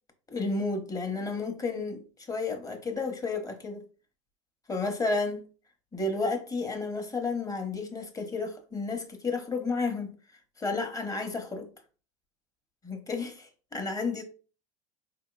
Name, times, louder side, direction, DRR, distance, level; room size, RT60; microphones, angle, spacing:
voice 1, 0.3-3.9 4.7-5.5 5.9-10.2 10.6-11.7 12.8-14.2, left 3 dB, 20° left, 0.9 m, -32 dB
4.3 x 2.8 x 2.3 m
supercardioid pair, 95°, 20 cm